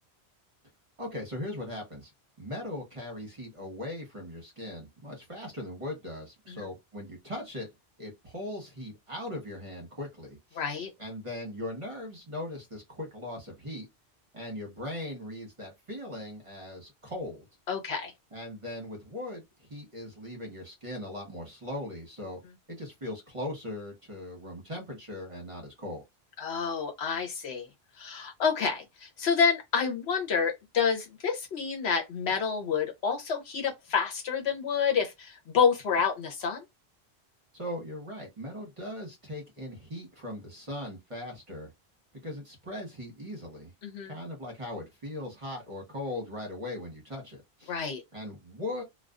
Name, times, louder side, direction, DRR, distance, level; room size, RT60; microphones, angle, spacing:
voice 1, 1.0-2.1 2.4-7.7 8.0-10.6 11.0-13.9 14.3-17.5 18.3-22.4 22.7-26.0 37.5-41.7 42.2-43.7 44.1-47.8 48.1-48.8, left 1 dB, 30° right, 1.0 m, -39 dB
voice 2, 10.6-10.9 17.7-18.1 26.4-27.7 28.0-36.6 43.8-44.2 47.7-48.0, left 6 dB, 80° left, 1.0 m, -28 dB
2.4 x 2.3 x 2.3 m
omnidirectional pair, 1.1 m